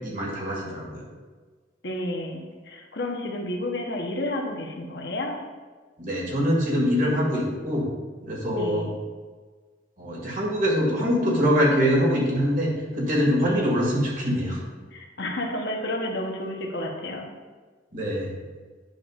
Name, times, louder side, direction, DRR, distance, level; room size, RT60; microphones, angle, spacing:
voice 1, 0.0-1.0 6.0-7.9 8.2-8.9 10.0-14.6 17.9-18.3, equal, 45° right, -3 dB, 2.0 m, -24 dB
voice 2, 1.8-5.4 8.6-9.0 13.4-13.8 14.9-17.3, left 1 dB, 60° left, 1 dB, 1.0 m, -31 dB
9.1 x 6.8 x 2.5 m, 1.4 s
head